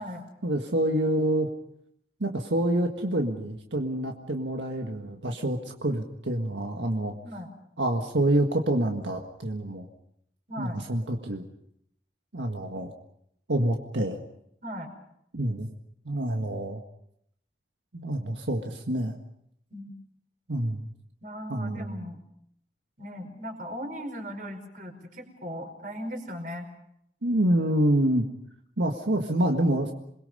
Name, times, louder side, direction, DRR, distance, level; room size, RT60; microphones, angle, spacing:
voice 1, 0.4-1.5 2.2-7.1 7.8-9.9 10.6-11.4 12.3-12.9 13.5-14.2 15.3-15.7 16.1-16.8 17.9-19.2 20.5-20.8 21.5-22.0 27.2-28.3 28.8-29.9, right 1 dB, 90° right, 3 dB, 1.7 m, -27 dB
voice 2, 10.5-10.8 14.6-14.9 19.7-19.9 21.2-22.2 23.0-26.7, equal, 45° right, 4 dB, 5.0 m, -38 dB
28.0 x 21.5 x 5.5 m, 0.73 s
head